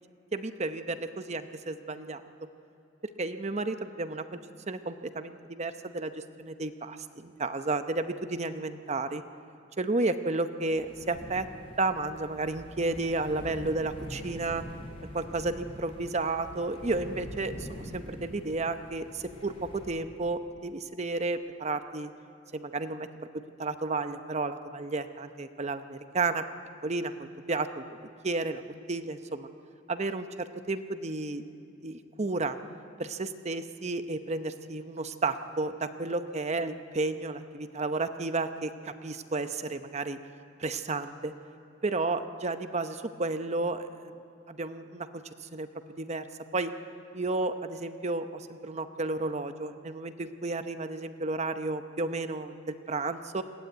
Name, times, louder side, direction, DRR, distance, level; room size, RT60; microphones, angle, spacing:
voice 1, 0.3-2.2 3.2-4.4 4.7-9.2 9.8-11.5 11.8-14.6 15.1-22.1 22.5-23.1 23.3-26.4 26.8-27.8 28.2-28.6 28.9-29.5 29.9-31.4 31.8-32.6 33.0-40.2 40.6-41.3 41.8-44.1 44.5-45.2 45.5-45.7 46.0-46.3 46.5-46.7 47.1-53.4, right 3 dB, 35° right, 9 dB, 0.8 m, -32 dB
sound 1, 10.7-19.9, equal, 30° left, 4.4 m, -45 dB
20.5 x 16.0 x 9.3 m, 2.6 s
head